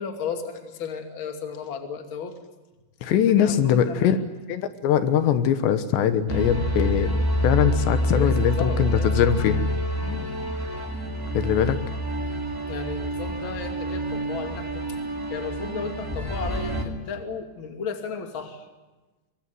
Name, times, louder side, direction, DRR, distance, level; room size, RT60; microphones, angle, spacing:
voice 1, 0.0-2.4 3.1-4.2 8.1-9.2 10.0-10.3 12.7-14.8 15.3-18.6, left 5 dB, 35° left, 5 dB, 2.6 m, -34 dB
voice 2, 3.0-4.2 4.5-7.1 7.4-9.7 11.4-11.8, left 9 dB, 80° left, 10 dB, 3.4 m, -22 dB
sound 1, 6.3-16.8, equal, 10° right, 1.6 m, -27 dB
23.5 x 22.5 x 9.4 m, 1.2 s
omnidirectional pair, 5.1 m